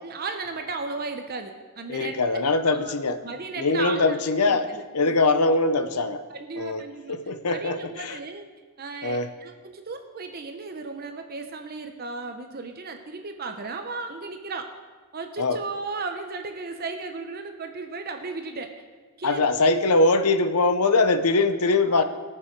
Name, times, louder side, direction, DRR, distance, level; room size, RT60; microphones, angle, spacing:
voice 1, 0.0-2.2 2.6-2.9 3.2-4.2 4.4-5.2 6.3-7.2 7.5-8.4 8.8-14.7 15.1-18.7 19.2-19.4 21.9-22.0, right 4 dB, 45° right, 6 dB, 0.8 m, -35 dB
voice 2, 1.9-3.2 3.6-4.7 4.9-6.2 6.6-6.8 7.1-8.2 9.0-9.3 15.4-15.6 19.2-22.0, left 3 dB, 90° left, 10 dB, 0.8 m, -22 dB
19.0 x 6.8 x 4.6 m, 1.4 s
head